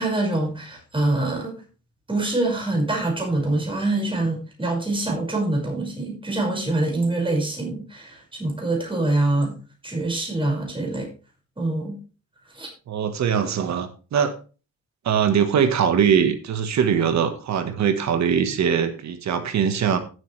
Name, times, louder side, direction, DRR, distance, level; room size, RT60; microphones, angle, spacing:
voice 1, 0.0-1.6 2.1-9.6 9.8-11.1 11.6-12.0 12.5-12.7, right 2 dB, 15° right, 0 dB, 5.6 m, -25 dB
voice 2, 12.9-14.4 15.0-20.0, right 7 dB, 65° right, 9 dB, 1.5 m, -22 dB
16.0 x 7.8 x 3.3 m, 0.34 s
cardioid pair, 90°, 30 cm